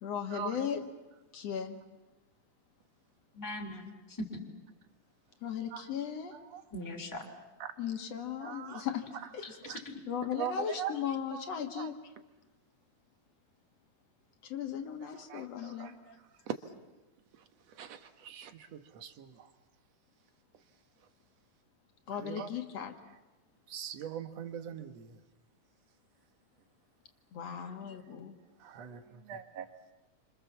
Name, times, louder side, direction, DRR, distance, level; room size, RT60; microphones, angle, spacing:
voice 1, 0.0-0.8 1.3-1.8 5.4-6.3 7.8-9.5 10.1-12.0 14.4-15.9 22.1-22.9 27.3-28.3, left 8 dB, 55° left, 5 dB, 2.5 m, -37 dB
voice 2, 3.3-4.3 6.7-7.2 9.4-10.0, left 1 dB, 5° left, 1 dB, 3.2 m, -41 dB
voice 3, 6.3-6.6 7.6-7.7 8.4-8.9 9.6-9.8 10.4-11.0 11.3-11.9 15.1-16.1 16.5-16.6 17.7-19.5 22.1-22.6 23.7-25.2 28.6-29.7, right 9 dB, 55° right, 8 dB, 2.3 m, -41 dB
30.0 x 26.5 x 7.4 m, 1.1 s
omnidirectional pair, 3.9 m